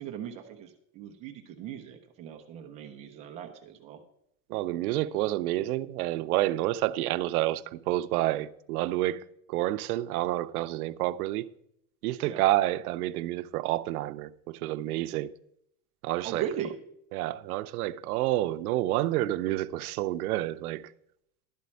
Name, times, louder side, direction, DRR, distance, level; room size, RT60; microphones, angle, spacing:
voice 1, 0.0-4.0 12.2-12.4 16.2-16.8, right 9 dB, 15° right, 0.3 m, -38 dB
voice 2, 4.5-9.2 9.5-11.5 12.0-15.3 16.0-16.4 17.1-20.9, right 15 dB, 85° right, 0.6 m, -29 dB
12.0 x 4.2 x 8.1 m
supercardioid pair, 170°, 43 cm